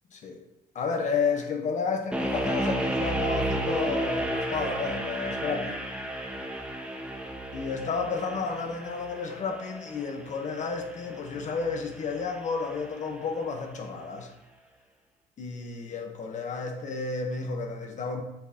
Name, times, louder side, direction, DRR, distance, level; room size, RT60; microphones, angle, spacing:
voice 1, 0.7-5.8 7.5-14.3 15.4-18.2, left 5 dB, 45° left, 3 dB, 1.3 m, -31 dB
sound 1, 2.1-13.2, right 1 dB, 5° right, 1.1 m, -33 dB
8.0 x 6.5 x 3.0 m, 0.90 s
cardioid pair, 110°, 17 cm